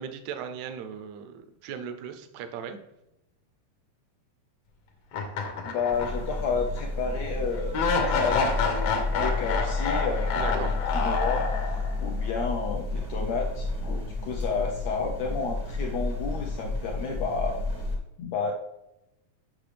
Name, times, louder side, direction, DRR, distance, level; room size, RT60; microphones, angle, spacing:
voice 1, 0.0-2.8 10.3-10.7, right 7 dB, 80° right, 8 dB, 1.7 m, -37 dB
sound 1, 5.1-6.4 6.8-6.9 7.7-12.0, left 4 dB, 65° left, 1.7 m, -28 dB
voice 2, 5.6-10.7 11.0-17.6 18.2-18.5, left 5 dB, 80° left, 1 dB, 1.6 m, -31 dB
sound 2, 5.9-17.9, left 3 dB, 10° right, 0.3 m, -31 dB
8.8 x 5.9 x 3.3 m, 0.89 s
omnidirectional pair, 3.8 m